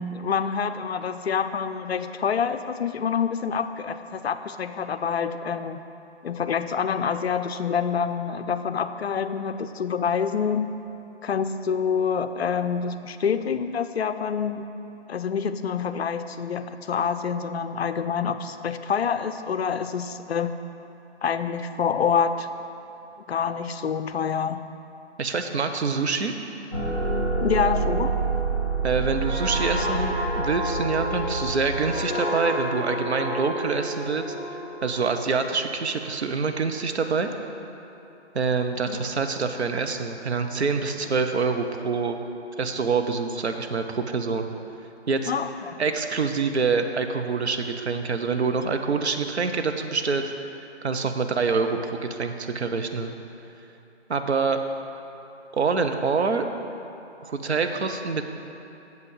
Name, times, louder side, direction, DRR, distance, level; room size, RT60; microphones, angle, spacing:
voice 1, 0.0-5.8 6.2-10.7 11.2-14.7 15.1-20.5 21.2-22.5 23.3-24.6 27.4-28.1 38.9-39.0 45.3-45.8, left 6 dB, 65° left, 10 dB, 0.5 m, -27 dB
voice 2, 25.2-26.3 28.8-37.3 38.3-42.2 42.6-44.5 45.1-45.3 45.8-50.3 50.8-53.1 54.1-54.6 55.5-56.5 57.2-58.2, right 4 dB, 70° right, 6 dB, 0.7 m, -26 dB
sound 1, 26.7-31.9, right 4 dB, 30° right, 1.6 m, -27 dB
sound 2, 29.1-36.5 36.9-37.2, left 1 dB, ahead, 1.9 m, -31 dB
7.7 x 5.7 x 5.4 m, 2.9 s
figure-of-eight pair, 165°, 34 cm